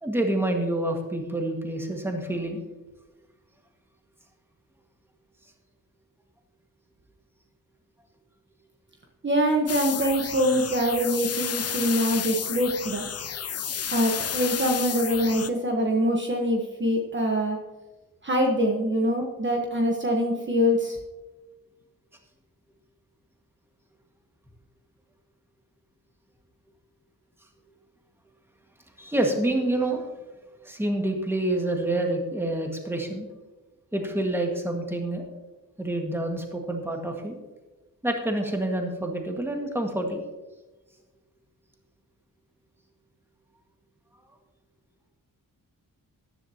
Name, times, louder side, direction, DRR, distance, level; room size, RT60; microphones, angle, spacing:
voice 1, 0.0-2.6 29.0-30.0 30.6-33.3 33.9-35.2 35.8-37.4 38.0-40.2, right 1 dB, 5° right, 2 dB, 1.9 m, -27 dB
voice 2, 9.2-13.1 13.9-17.6 18.2-21.0, equal, 35° right, 1 dB, 1.3 m, -24 dB
sound 1, 9.7-15.5, left 8 dB, 45° left, 0.6 m, -31 dB
14.0 x 11.0 x 3.0 m, 1.1 s
wide cardioid pair, 100°, 35 cm